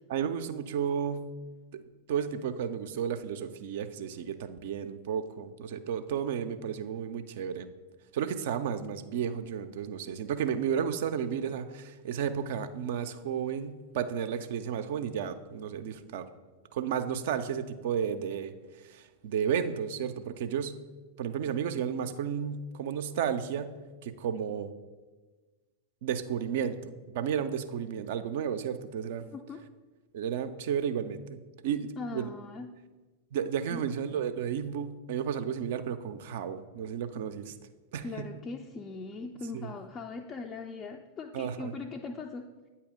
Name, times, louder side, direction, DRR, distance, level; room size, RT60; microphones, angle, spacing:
voice 1, 0.1-1.3 1.7-1.8 2.1-7.7 8.1-16.3 16.7-20.8 21.2-23.7 24.0-24.7 26.0-29.3 30.1-32.3 33.3-37.5 37.9-38.3 39.5-39.7 41.3-41.7, right 8 dB, 55° right, 9 dB, 0.4 m, -33 dB
voice 2, 32.0-32.7 33.6-33.8 38.0-42.5, left 4 dB, 25° left, 3 dB, 0.3 m, -40 dB
8.3 x 2.8 x 4.9 m, 1.3 s
figure-of-eight pair, 90°, 0 cm